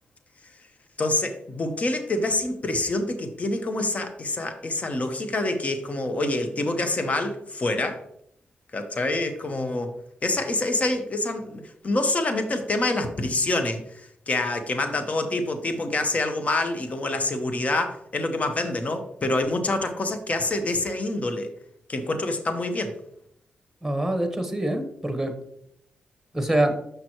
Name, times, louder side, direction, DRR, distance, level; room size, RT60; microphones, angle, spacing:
voice 1, 1.0-8.0 8.7-9.9 10.2-21.5 21.9-23.0, left 2 dB, 40° left, 7 dB, 1.0 m, -26 dB
voice 2, 23.8-25.3 26.3-26.8, right 1 dB, 5° right, 6 dB, 1.2 m, -25 dB
6.7 x 6.0 x 3.0 m, 0.71 s
cardioid pair, 65°, 4 cm